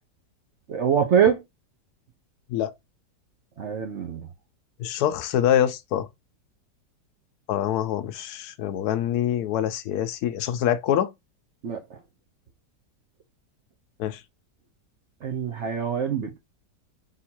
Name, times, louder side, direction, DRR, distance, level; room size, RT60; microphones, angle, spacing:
voice 1, 0.7-1.4 3.6-4.3 11.6-11.8 15.2-16.4, right 7 dB, 55° right, 0.9 m, -24 dB
voice 2, 4.8-6.1 7.5-11.1 14.0-14.2, left 10 dB, 70° left, 1.0 m, -25 dB
3.8 x 2.8 x 4.3 m
omnidirectional pair, 1.9 m